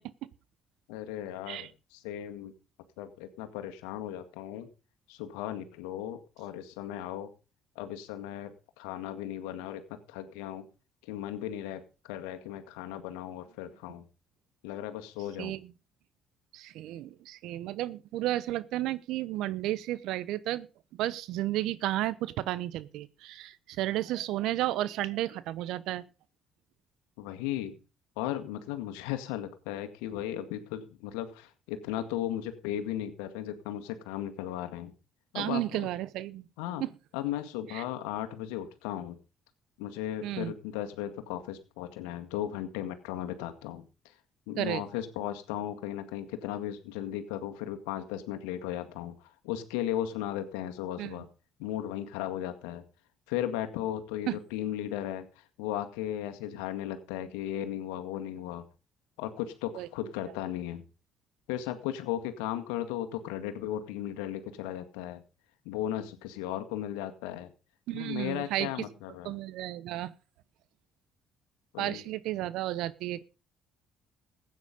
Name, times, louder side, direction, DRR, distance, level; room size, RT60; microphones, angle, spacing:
voice 1, 0.9-2.5 3.0-4.7 5.1-7.3 7.8-10.7 11.0-14.1 14.6-15.6 27.2-27.8 28.2-34.9 35.3-35.9 36.6-36.8 37.1-39.2 39.8-44.1 44.5-51.3 51.6-52.8 53.3-58.7 59.2-60.8 61.5-65.2 65.7-67.5 67.9-69.4 71.7-72.0, left 12 dB, 85° left, 7 dB, 1.9 m, -36 dB
voice 2, 16.5-20.7 20.9-26.0 35.3-36.5 36.8-36.9 37.7-37.8 40.2-40.5 44.6-44.8 51.0-51.2 54.3-54.4 59.7-59.9 67.9-68.7 69.2-70.1 71.8-73.2, right 14 dB, 75° right, 18 dB, 0.9 m, -32 dB
15.5 x 9.3 x 5.3 m, 0.33 s
supercardioid pair, 65°, 0 cm